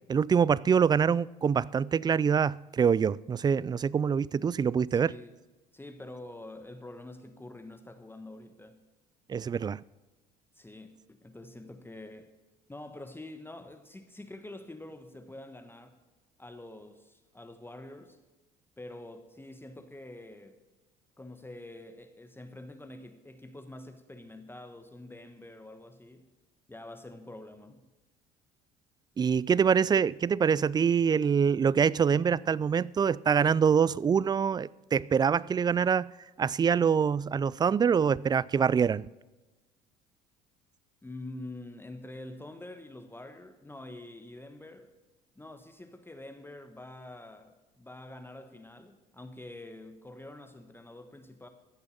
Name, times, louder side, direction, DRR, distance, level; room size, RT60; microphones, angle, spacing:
voice 1, 0.1-5.1 9.3-9.8 29.2-36.1 36.4-39.1, right 7 dB, 20° right, 0.3 m, -25 dB
voice 2, 4.9-5.3 5.7-8.8 10.5-12.3 12.7-16.0 16.4-18.2 18.8-20.6 21.2-26.3 26.7-27.9 41.0-44.9 45.4-51.5, left 1 dB, 10° left, 1.3 m, -46 dB
15.0 x 6.9 x 7.2 m
hypercardioid pair, 65°, 19 cm